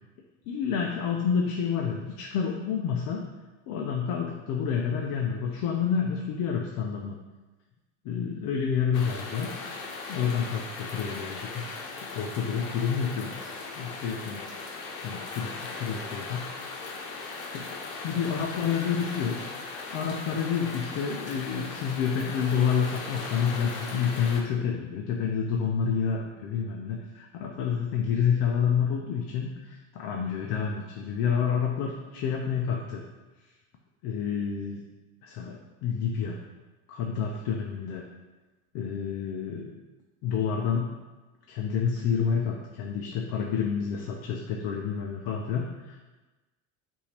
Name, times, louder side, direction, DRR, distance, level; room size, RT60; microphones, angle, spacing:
voice 1, 0.5-3.2 3.7-7.2 8.0-9.5 10.1-16.4 17.5-17.7 18.0-33.0 34.0-34.8 35.2-36.4 36.9-38.0 38.7-39.6 40.2-40.9 41.5-46.0, left 7 dB, 60° left, 1 dB, 0.6 m, -29 dB
sound 1, 8.9-24.4, left 3 dB, 85° left, 0.9 m, -38 dB
5.5 x 2.7 x 3.3 m, 1.2 s
supercardioid pair, 115°, 40 cm